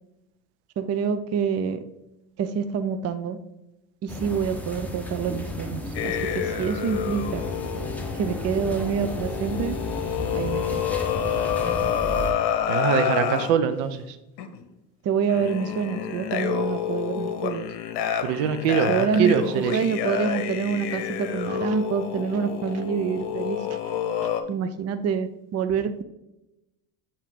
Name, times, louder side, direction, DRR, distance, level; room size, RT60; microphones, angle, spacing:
voice 1, 0.8-1.8 2.4-3.4 4.0-7.4 8.1-9.8 10.3-10.8 15.0-17.6 18.9-23.6 24.5-26.0, right 6 dB, 35° right, 10 dB, 0.5 m, -27 dB
sound 1, 4.1-12.3, left 1 dB, 5° left, 1.1 m, -33 dB
sound 2, 5.9-13.5 14.4-14.6 15.3-24.4, left 9 dB, 60° left, 0.9 m, -28 dB
voice 2, 12.7-14.2 18.2-19.8, right 7 dB, 70° right, 10 dB, 0.8 m, -23 dB
7.3 x 2.8 x 5.0 m, 0.91 s
hypercardioid pair, 70°, 47 cm